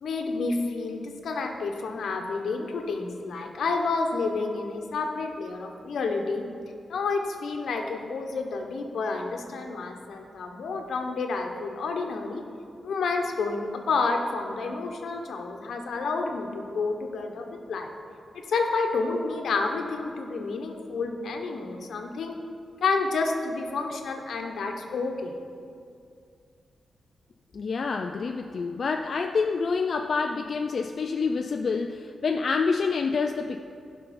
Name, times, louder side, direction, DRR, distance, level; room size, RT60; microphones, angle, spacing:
voice 1, 0.0-6.4 6.9-12.4 12.8-17.9 18.5-22.3 22.8-25.3, left 4 dB, 80° left, 3 dB, 1.0 m, -29 dB
voice 2, 27.5-33.6, left 4 dB, 50° left, 4 dB, 0.4 m, -27 dB
16.0 x 5.5 x 4.3 m, 2.4 s
wide cardioid pair, 145°, 0 cm